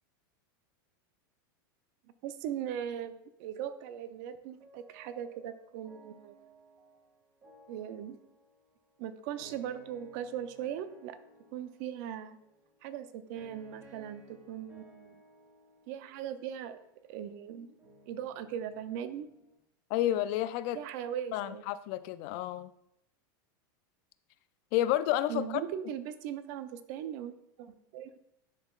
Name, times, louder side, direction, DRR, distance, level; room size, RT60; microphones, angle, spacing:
voice 1, 2.2-6.4 7.7-8.2 9.0-11.2 11.5-12.4 12.8-15.2 15.9-16.8 17.1-17.7 18.1-19.3 20.7-21.6 25.3-28.2, right 9 dB, 55° right, 12 dB, 0.5 m, -39 dB
sound 1, 4.6-19.6, right 1 dB, 25° right, 2.0 m, -60 dB
voice 2, 19.9-20.8 21.3-22.7 24.7-25.4, left 13 dB, 50° left, 14 dB, 0.3 m, -30 dB
10.5 x 3.8 x 2.4 m, 0.79 s
supercardioid pair, 140°, 11 cm